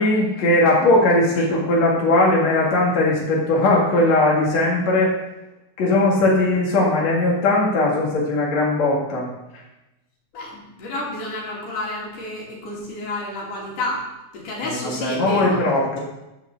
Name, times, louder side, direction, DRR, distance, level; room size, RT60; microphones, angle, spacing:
voice 1, 0.0-5.1 5.8-9.3 14.6-16.0, left 2 dB, 60° left, -4 dB, 3.4 m, -19 dB
voice 2, 10.3-14.0 14.3-15.6, left 2 dB, 80° left, -4 dB, 4.3 m, -30 dB
10.5 x 7.2 x 7.0 m, 0.96 s
omnidirectional pair, 3.5 m